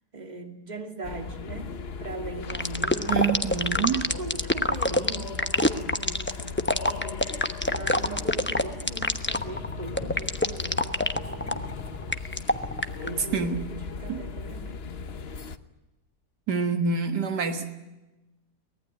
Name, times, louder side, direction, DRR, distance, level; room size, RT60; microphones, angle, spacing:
voice 1, 0.1-1.7 2.0-3.2 3.9-6.6 7.7-11.8 13.0-14.8, right 3 dB, 25° right, 5 dB, 2.5 m, -39 dB
sound 1, 1.0-15.6, left 5 dB, 40° left, 1.1 m, -37 dB
sound 2, 2.5-13.1, left 1 dB, 10° left, 0.8 m, -25 dB
voice 2, 3.1-4.1 13.3-13.6 14.1-14.2 16.5-17.7, right 5 dB, 75° right, 7 dB, 2.1 m, -26 dB
24.0 x 19.0 x 9.1 m, 1.0 s
omnidirectional pair, 1.8 m